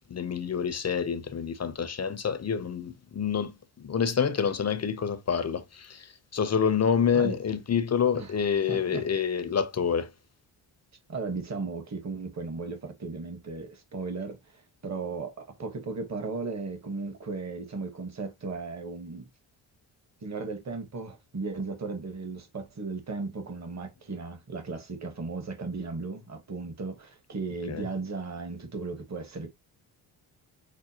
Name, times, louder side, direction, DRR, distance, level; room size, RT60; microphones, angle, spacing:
voice 1, 0.1-10.1 27.7-27.8, left 7 dB, 30° left, 0.7 m, -27 dB
voice 2, 8.7-9.1 11.1-19.3 20.2-29.5, right 4 dB, 35° right, 1.4 m, -36 dB
6.1 x 2.1 x 2.9 m
supercardioid pair, 55°, 49 cm